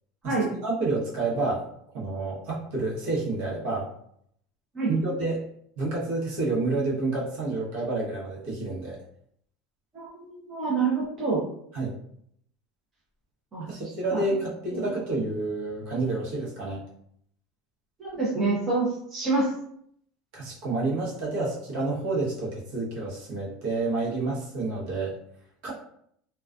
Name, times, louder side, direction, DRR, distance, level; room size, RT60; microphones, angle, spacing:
voice 1, 0.6-1.6 1.9-3.9 4.9-5.4 5.8-9.0 11.7-11.9 13.7-16.8 20.3-25.1 25.6-25.7, right 2 dB, 55° right, -5 dB, 0.9 m, -29 dB
voice 2, 9.9-11.5 13.5-13.8 14.1-14.2 14.7-14.8 18.0-19.5, right 3 dB, 20° right, -6 dB, 0.6 m, -27 dB
2.3 x 2.2 x 2.4 m, 0.69 s
supercardioid pair, 170°, 0 cm